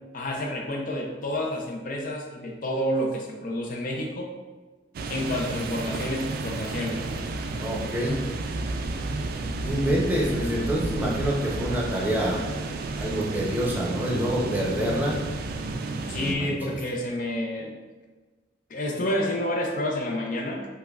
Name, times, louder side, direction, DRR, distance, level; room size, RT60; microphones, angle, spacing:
voice 1, 0.1-4.3 5.1-7.0 16.1-17.7 18.7-20.7, left 1 dB, 50° left, 1 dB, 0.4 m, -29 dB
sound 1, 4.9-16.3, right 2 dB, 55° right, 0.3 m, -32 dB
voice 2, 7.6-8.2 9.6-12.5 13.0-15.2 16.1-16.8, equal, 10° right, -3 dB, 0.6 m, -27 dB
5.3 x 2.1 x 2.3 m, 1.3 s
head